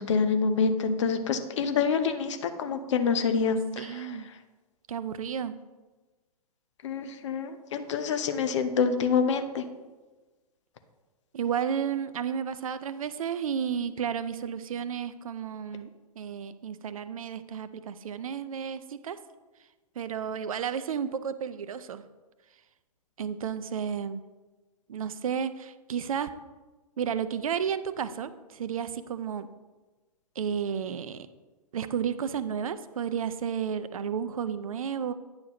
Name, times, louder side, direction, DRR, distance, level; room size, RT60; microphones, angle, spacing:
voice 1, 0.0-4.2 6.8-9.6, left 5 dB, 50° left, 8 dB, 0.7 m, -27 dB
voice 2, 3.8-4.3 4.9-5.6 11.3-15.9 16.2-19.2 20.0-22.0 23.2-24.2 24.9-26.3 27.0-29.5 30.4-31.3 31.7-35.1, right 7 dB, 60° right, 13 dB, 0.5 m, -32 dB
9.4 x 6.5 x 3.0 m, 1.2 s
figure-of-eight pair, 115°, 20 cm